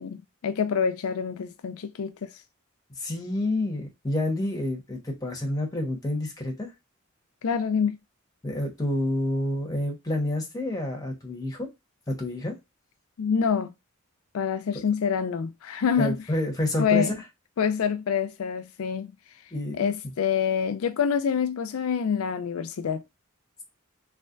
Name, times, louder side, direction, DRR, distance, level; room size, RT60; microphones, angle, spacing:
voice 1, 0.0-2.3 7.4-8.0 13.2-13.7 14.3-16.2 16.8-17.1 17.6-19.1 19.8-23.0, left 7 dB, 85° left, 0.4 m, -26 dB
voice 2, 3.0-6.7 8.4-11.7 12.1-12.5 16.0-17.1 19.5-19.9, left 1 dB, 20° left, 1.1 m, -28 dB
3.3 x 3.3 x 2.5 m
head